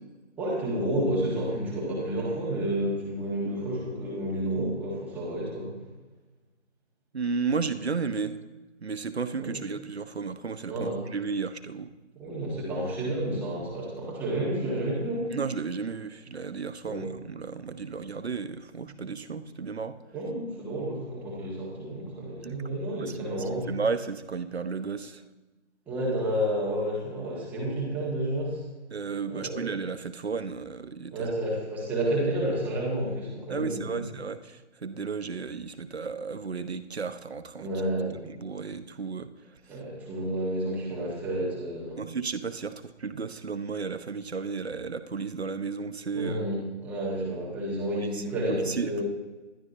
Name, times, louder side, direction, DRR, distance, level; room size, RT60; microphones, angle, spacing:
voice 1, 0.4-5.7 9.4-9.6 10.7-11.0 12.1-15.4 16.9-17.0 18.9-19.0 20.1-23.7 25.9-28.6 29.3-29.6 31.1-34.0 37.6-38.2 39.7-42.0 46.1-49.0, right 1 dB, 5° right, -5 dB, 1.6 m, -30 dB
voice 2, 7.1-8.3 8.8-11.9 15.3-20.0 22.4-22.6 23.0-23.2 23.7-25.2 28.9-31.3 33.5-37.7 38.2-39.3 39.7-39.8 42.0-46.4 48.1-48.2 48.5-49.0, right 5 dB, 60° right, 11 dB, 1.0 m, -33 dB
20.0 x 12.0 x 2.6 m, 1.2 s
figure-of-eight pair, 150°, 36 cm